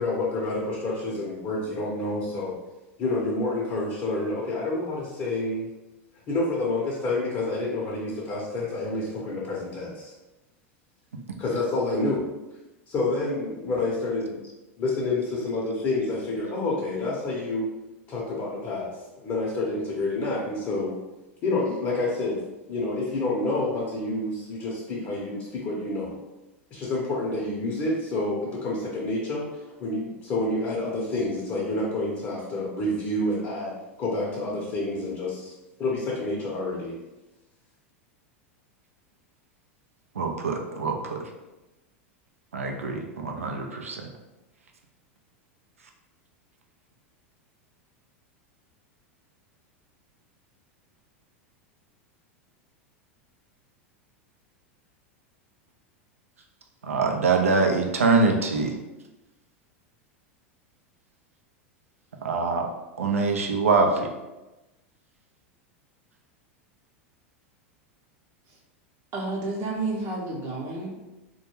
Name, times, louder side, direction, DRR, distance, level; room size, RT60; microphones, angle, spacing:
voice 1, 0.0-2.6 3.0-5.7 6.3-10.1 11.4-12.3 12.9-14.4 14.8-17.7 18.1-21.0 21.4-22.4 22.7-26.2 26.7-29.5 29.8-35.5 35.8-37.0, left 2 dB, 35° left, -5 dB, 0.7 m, -28 dB
voice 2, 40.1-41.3 42.5-44.1 56.8-58.8 62.2-62.7 63.0-64.1, right 4 dB, 90° right, 2 dB, 0.4 m, -24 dB
voice 3, 69.1-70.9, right 2 dB, 45° right, -3 dB, 0.7 m, -30 dB
2.2 x 2.1 x 3.0 m, 1.0 s
hypercardioid pair, 95°, 7 cm